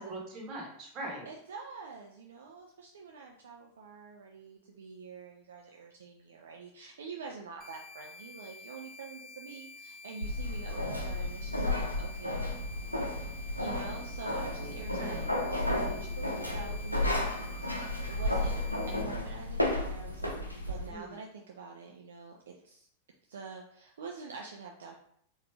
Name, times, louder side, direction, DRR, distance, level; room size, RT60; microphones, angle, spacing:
voice 1, 0.0-1.3 14.6-15.3 20.9-21.2, right 1 dB, 35° right, -1 dB, 1.2 m, -42 dB
voice 2, 1.3-12.4 12.9-13.1 13.6-17.3 17.6-18.6 18.9-20.3 20.7-22.9 23.3-24.9, right 4 dB, 65° right, 0 dB, 0.4 m, -46 dB
sound 1, 7.6-19.0, left 3 dB, 25° left, 0.6 m, -50 dB
sound 2, 10.2-20.9, left 1 dB, 85° left, 0.6 m, -33 dB
4.1 x 2.5 x 3.3 m, 0.66 s
figure-of-eight pair, 90°, 0 cm